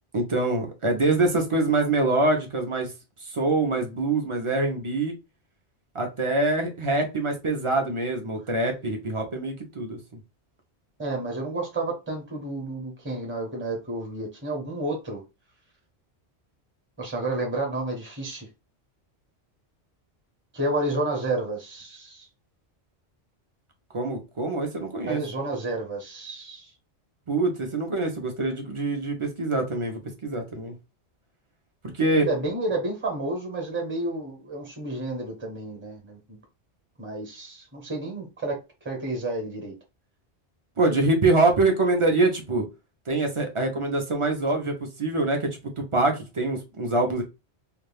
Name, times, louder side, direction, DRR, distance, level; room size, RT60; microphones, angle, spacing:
voice 1, 0.1-2.9 3.2-5.1 5.9-10.0 23.9-25.2 27.3-30.7 32.0-32.3 40.8-42.7 43.1-47.2, right 2 dB, 35° right, 0.6 m, -24 dB
voice 2, 11.0-15.2 17.0-18.5 20.5-22.3 25.1-26.7 32.2-36.4 37.0-38.6 38.8-39.7, right 2 dB, 10° right, 0.9 m, -30 dB
2.5 x 2.3 x 3.3 m
omnidirectional pair, 1.2 m